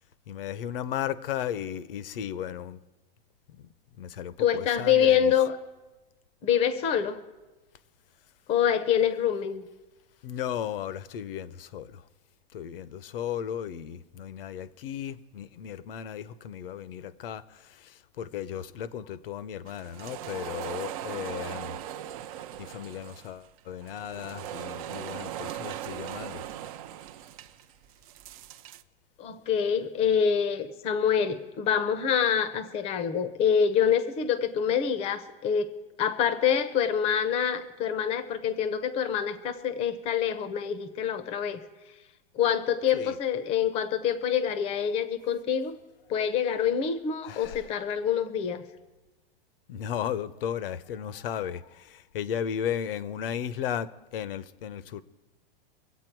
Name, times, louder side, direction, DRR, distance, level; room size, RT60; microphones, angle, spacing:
voice 1, 0.3-2.8 3.5-3.7 4.0-5.3 10.2-12.0 12.5-21.8 22.6-26.4 42.9-43.2 47.3-47.7 49.7-55.0, left 9 dB, 60° left, 17 dB, 0.8 m, -35 dB
voice 2, 4.4-5.6 6.4-7.2 8.5-9.7 29.2-35.7 36.0-41.6 42.3-45.8 46.1-48.6, left 8 dB, 20° left, 13 dB, 0.7 m, -26 dB
sound 1, 19.7-28.8, right 11 dB, 35° right, 0.6 m, -39 dB
24.0 x 8.3 x 4.6 m, 1.1 s
supercardioid pair, 165°, 31 cm